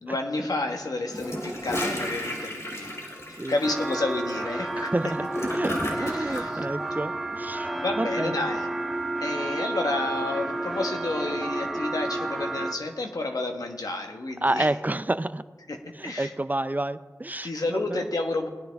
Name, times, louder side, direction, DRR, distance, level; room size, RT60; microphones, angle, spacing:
voice 1, 0.0-5.1 5.9-6.6 7.7-8.7 9.2-14.7 15.7-16.3 17.4-18.5, left 2 dB, 80° left, 3 dB, 1.4 m, -31 dB
Gurgling / Toilet flush, 1.1-6.4, equal, 50° left, 3.1 m, -32 dB
sound 1, 3.6-12.7, right 2 dB, ahead, 1.2 m, -31 dB
voice 2, 4.9-5.2 5.5-5.7 6.0-7.7 8.0-8.4 14.4-15.4 16.0-18.0, right 2 dB, 25° right, 14 dB, 0.4 m, -29 dB
18.5 x 10.5 x 3.5 m, 1.3 s
wide cardioid pair, 45°, 6 cm